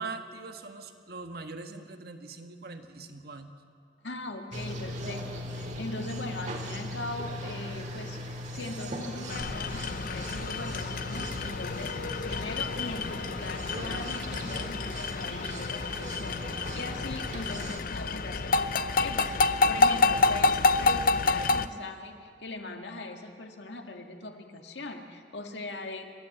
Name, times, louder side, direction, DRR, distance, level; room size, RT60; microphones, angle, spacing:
voice 1, 0.0-3.5, right 4 dB, 60° right, 6 dB, 1.5 m, -41 dB
voice 2, 4.0-12.0 12.2-19.3 19.6-26.1, left 2 dB, 85° left, 4 dB, 2.1 m, -40 dB
sound 1, 4.5-17.8, equal, 45° right, 2.2 m, -39 dB
sound 2, 9.3-21.7, left 3 dB, 55° left, 0.6 m, -28 dB
29.0 x 13.0 x 8.0 m, 2.3 s
head